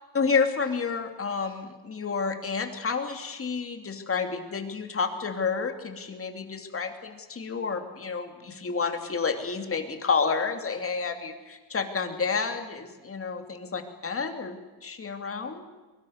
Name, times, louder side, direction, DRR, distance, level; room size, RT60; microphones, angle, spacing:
voice 1, 0.1-15.7, left 5 dB, 30° left, 6 dB, 2.8 m, -30 dB
23.0 x 23.0 x 6.6 m, 1.3 s
cardioid pair, 150°, 44 cm